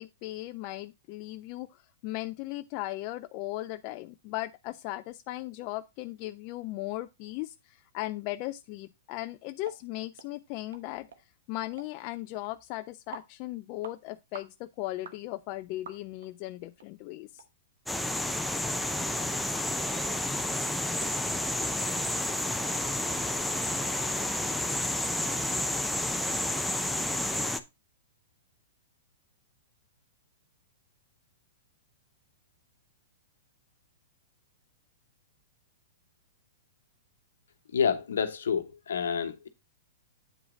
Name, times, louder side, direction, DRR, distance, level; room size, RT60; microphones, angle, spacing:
voice 1, 0.0-11.1 11.5-17.4, left 17 dB, 45° left, 0.4 m, -37 dB
sound 1, 9.6-9.8 10.2-10.3 10.7-10.8 11.1-11.2 11.8-11.9 12.4-12.5 13.1-13.3 13.8-14.0 14.3-14.5 15.0-15.2 15.9-16.3 16.8-16.9 17.4-17.5 17.9-18.0, right 6 dB, 75° right, 1.0 m, -46 dB
sound 2, 17.9-27.6, left 1 dB, ahead, 0.7 m, -30 dB
voice 2, 37.7-39.5, left 7 dB, 75° left, 1.0 m, -28 dB
8.7 x 4.9 x 3.7 m
hypercardioid pair, 115°, 0 cm